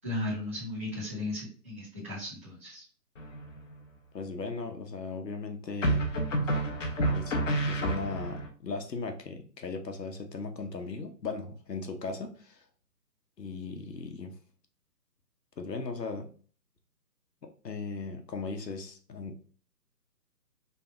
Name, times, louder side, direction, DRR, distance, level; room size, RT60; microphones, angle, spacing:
voice 1, 0.0-2.8, left 1 dB, 10° right, -14 dB, 0.6 m, -36 dB
sound 1, 3.2-3.7 5.8-8.5, right 1 dB, 50° left, 0.8 m, -29 dB
voice 2, 4.1-6.0 7.1-12.6 13.4-14.3 15.6-16.3 17.6-19.4, left 4 dB, 80° left, 5 dB, 1.0 m, -37 dB
3.4 x 2.3 x 4.4 m, 0.43 s
figure-of-eight pair, 145°, 49 cm